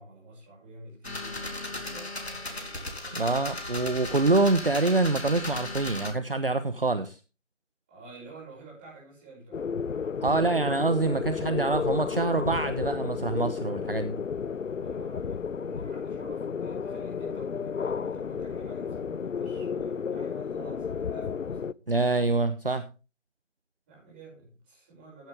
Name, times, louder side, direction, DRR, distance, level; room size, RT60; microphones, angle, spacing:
voice 1, 0.0-3.4 7.9-9.6 14.7-21.9 23.9-25.3, right 2 dB, 10° right, -8 dB, 6.7 m, -49 dB
sound 1, 1.0-6.1, left 2 dB, 55° left, 3.5 m, -36 dB
voice 2, 3.1-7.2 10.2-14.2 21.9-22.9, right 3 dB, 45° right, 10 dB, 1.0 m, -26 dB
sound 2, 9.5-21.7, left 6 dB, 80° left, 0.6 m, -32 dB
14.0 x 10.5 x 3.5 m, 0.32 s
figure-of-eight pair, 170°, 38 cm